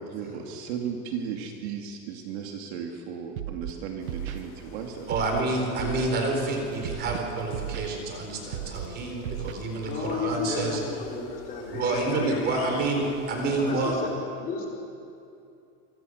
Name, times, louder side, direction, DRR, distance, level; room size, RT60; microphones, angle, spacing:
voice 1, 0.0-5.5, right 7 dB, 45° right, 2 dB, 2.4 m, -35 dB
Scratching (performance technique), 3.4-3.7 4.1-4.4 5.1-5.4 5.8-6.1 6.8-7.2 7.5-7.9 8.5-8.9 9.2-9.5, right 13 dB, 65° right, 1.4 m, -34 dB
sound 1, 4.0-14.0, left 4 dB, 40° left, 5.8 m, -46 dB
voice 2, 5.1-10.8 11.7-13.9, right 2 dB, 20° right, 2 dB, 4.2 m, -28 dB
voice 3, 9.9-13.1 13.5-14.7, left 4 dB, 20° left, -2 dB, 3.9 m, -33 dB
27.0 x 24.5 x 6.5 m, 2.6 s
supercardioid pair, 175°, 45 cm